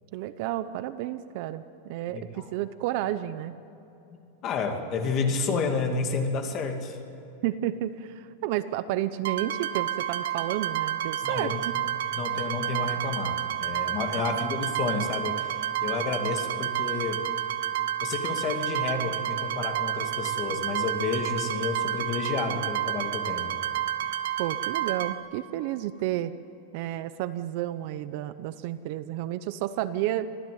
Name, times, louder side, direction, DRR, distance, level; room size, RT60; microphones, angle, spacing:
voice 1, 0.1-3.5 7.4-11.5 14.1-14.4 24.4-26.3 26.7-30.3, right 13 dB, 40° right, 13 dB, 0.7 m, -31 dB
voice 2, 2.1-2.5 4.4-7.0 11.2-11.6 12.1-17.2 18.0-23.5, left 4 dB, 25° left, 4 dB, 2.2 m, -30 dB
sound 1, 9.2-25.1, right 11 dB, 75° right, 1.3 m, -30 dB
25.5 x 16.5 x 9.4 m, 2.9 s
supercardioid pair, 180°, 0 cm